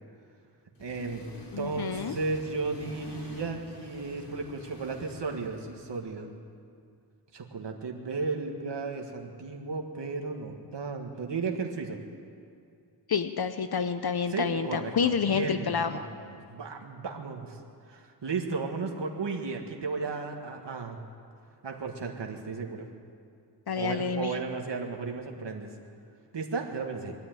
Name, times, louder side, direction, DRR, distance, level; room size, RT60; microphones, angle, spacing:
Accelerating revving vroom, 0.8-6.0, left 1 dB, 90° left, 3.6 m, -46 dB
voice 1, 0.8-1.2 1.6-6.3 7.3-12.0 14.3-17.6 17.9-21.0 21.6-22.9 23.7-25.7 26.3-27.1, right 4 dB, 85° right, 2 dB, 1.8 m, -34 dB
voice 2, 1.5-2.1 13.1-16.0 23.7-24.3, left 6 dB, 65° left, 9 dB, 0.8 m, -28 dB
22.5 x 12.5 x 9.2 m, 2.4 s
wide cardioid pair, 100°, 41 cm